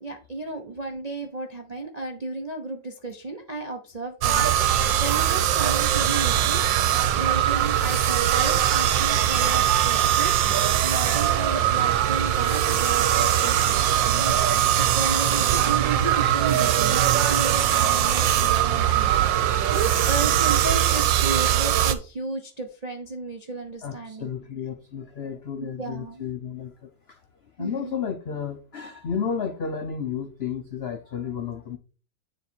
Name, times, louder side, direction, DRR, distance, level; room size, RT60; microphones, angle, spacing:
voice 1, 0.0-24.3 25.8-26.2 27.6-28.0, right 3 dB, 50° right, 0.4 m, -34 dB
sound 1, 4.2-21.9, right 11 dB, 80° right, 1.4 m, -21 dB
voice 2, 23.8-27.2 27.6-31.8, left 7 dB, 80° left, 0.5 m, -32 dB
9.6 x 3.2 x 4.4 m
omnidirectional pair, 2.0 m